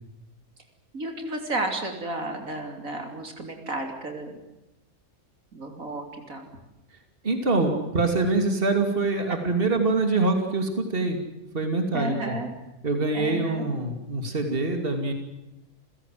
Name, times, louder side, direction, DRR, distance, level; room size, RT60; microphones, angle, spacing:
voice 1, 0.9-4.3 5.5-6.5 11.9-12.5 13.1-13.6, right 2 dB, 75° right, 4 dB, 3.6 m, -32 dB
voice 2, 7.2-11.2 11.5-12.4 12.8-15.1, right 3 dB, 40° right, 5 dB, 3.0 m, -24 dB
29.0 x 16.5 x 7.8 m, 1.0 s
omnidirectional pair, 1.4 m